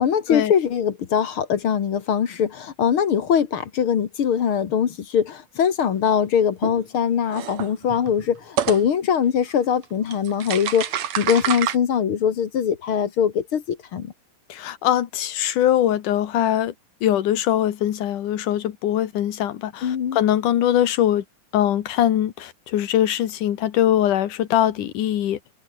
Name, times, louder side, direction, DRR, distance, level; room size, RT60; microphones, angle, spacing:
voice 1, 0.0-14.1 19.8-20.2, left 8 dB, 50° left, 2.0 m, -22 dB
sound 1, 6.6-6.8 7.3-8.8 9.8-9.9 10.1-11.8, right 10 dB, 60° right, 2.6 m, -27 dB
voice 2, 14.5-16.7 17.0-21.2 21.5-25.4, left 11 dB, 80° left, 3.0 m, -22 dB
omnidirectional pair, 3.6 m